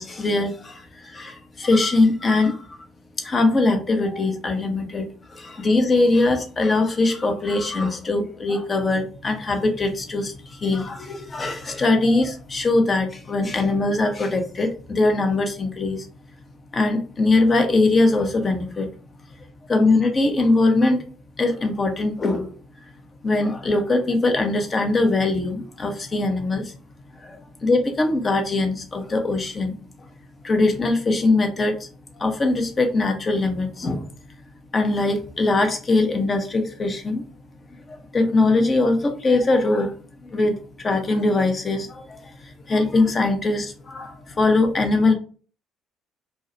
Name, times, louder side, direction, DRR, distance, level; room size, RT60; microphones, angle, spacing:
voice 1, 0.0-2.8 3.2-16.1 16.7-18.9 19.4-21.1 21.4-22.6 23.2-26.8 27.1-30.1 30.4-31.9 32.2-34.1 34.7-37.2 37.9-45.1, left 2 dB, 35° left, 5 dB, 0.6 m, -22 dB
2.2 x 2.1 x 2.7 m, 0.39 s
hypercardioid pair, 50°, 0 cm